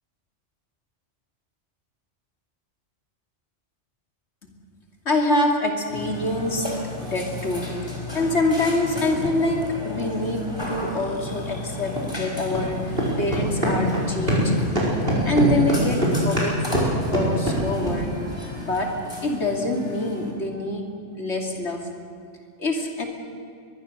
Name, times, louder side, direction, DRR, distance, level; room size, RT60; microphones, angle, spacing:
voice 1, 5.0-6.7 7.0-7.8 8.1-14.8 15.2-18.2 18.6-21.9 22.6-23.1, left 2 dB, 65° left, 2 dB, 3.1 m, -25 dB
Burping eructation, 5.9-20.3, left 2 dB, 20° left, 4.4 m, -34 dB
sound 1, 9.1-9.2 10.6-10.7 12.0-12.1 12.5-12.7 12.9-14.5 14.8-18.0, right 1 dB, 50° right, 5.4 m, -23 dB
22.5 x 22.5 x 6.7 m, 2.2 s
omnidirectional pair, 1.2 m